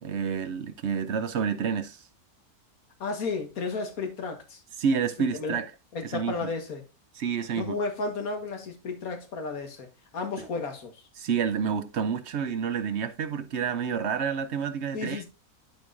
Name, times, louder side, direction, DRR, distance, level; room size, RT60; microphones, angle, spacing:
voice 1, 0.0-2.0 4.8-5.7 6.0-6.3 7.2-7.8 10.4-10.5 11.2-15.2, right 6 dB, 60° right, 0.8 m, -29 dB
voice 2, 3.0-4.6 5.3-5.6 5.9-6.8 7.5-9.9 10.1-11.0 14.9-15.2, left 4 dB, 70° left, 1.8 m, -33 dB
11.5 x 4.6 x 2.5 m
omnidirectional pair, 1.6 m